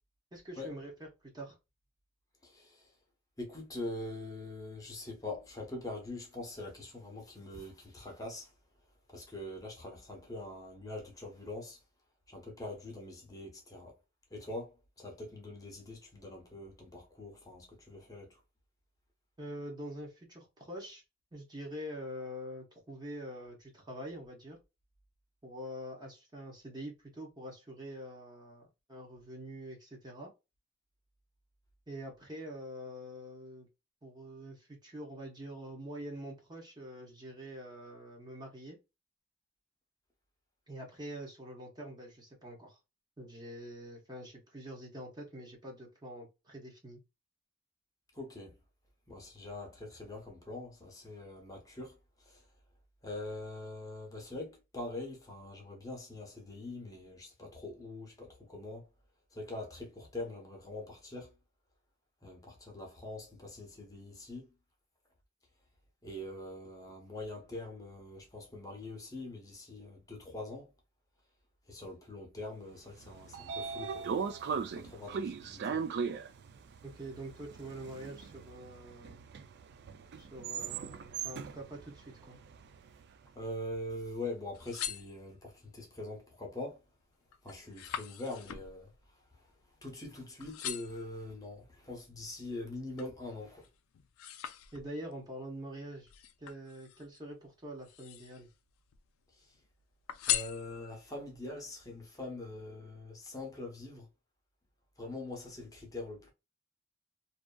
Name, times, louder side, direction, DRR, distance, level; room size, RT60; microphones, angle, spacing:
voice 1, 0.3-0.9 1.2-1.6 19.4-21.0 21.3-24.6 25.4-30.3 31.9-33.7 34.0-38.8 40.7-42.8 43.2-47.0 76.8-79.2 80.2-82.4 94.7-96.1 96.4-98.5, equal, 20° right, 0.9 m, -45 dB
voice 2, 2.4-2.9 3.4-8.5 9.1-11.8 12.3-14.0 14.3-18.4 48.1-48.6 49.1-52.5 53.0-58.9 59.3-61.3 62.2-64.5 66.0-70.7 71.7-74.1 74.5-75.8 83.3-86.8 87.4-89.5 89.8-93.7 99.3-99.6 100.3-104.1 105.0-106.3, left 2 dB, 15° left, 0.8 m, -43 dB
Train / Sliding door, 72.9-83.1, right 6 dB, 55° right, 0.3 m, -39 dB
sound 1, 84.4-85.7 86.2-86.6 87.0-90.1 90.4-91.1 91.7-93.2 93.6-95.2 96.1-97.2 97.7-98.5 98.9-99.6 100.1-101.1 101.7-101.8, left 11 dB, 85° left, 0.4 m, -40 dB
2.6 x 2.5 x 2.2 m
head